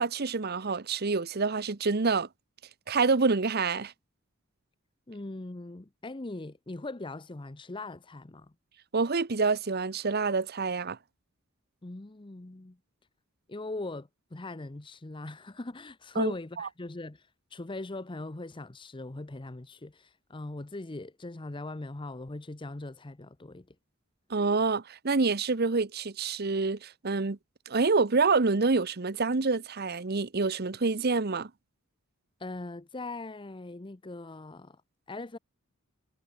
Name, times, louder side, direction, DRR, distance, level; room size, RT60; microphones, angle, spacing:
voice 1, 0.0-2.3 2.9-3.9 8.9-11.0 16.2-16.7 24.3-27.4 27.7-31.5, right 4 dB, 50° right, 0.9 m, -27 dB
voice 2, 5.1-8.5 11.8-12.8 13.5-17.2 17.5-23.7 32.4-34.8 35.1-35.4, left 2 dB, 25° left, 0.7 m, -40 dB
head